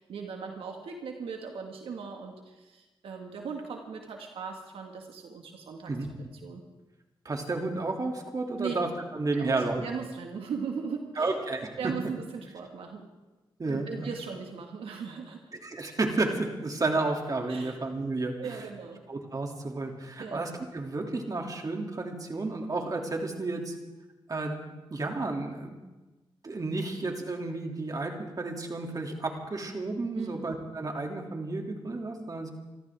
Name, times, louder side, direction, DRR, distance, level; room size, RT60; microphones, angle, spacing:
voice 1, 0.0-5.9 6.4-6.7 8.6-8.7 9.3-11.4 11.8-13.1 13.7-15.5 17.5-17.8 18.4-19.0 20.2-20.4 30.1-30.5, right 6 dB, 85° right, 2 dB, 2.0 m, -38 dB
voice 2, 7.2-9.8 11.2-11.7 13.6-14.1 15.6-18.6 19.1-23.7 24.3-25.8 26.4-32.5, right 3 dB, 40° right, 2 dB, 2.9 m, -32 dB
27.0 x 14.0 x 3.7 m, 1.1 s
cardioid pair, 65°, 9 cm